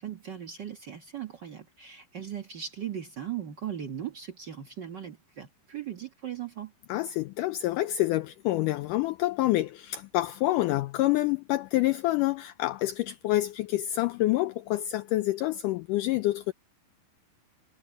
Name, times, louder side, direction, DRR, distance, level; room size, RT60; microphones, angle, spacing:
voice 1, 0.0-6.7, right 10 dB, 85° right, 0.9 m, -38 dB
voice 2, 6.9-16.5, left 16 dB, 85° left, 1.9 m, -27 dB
omnidirectional pair, 4.3 m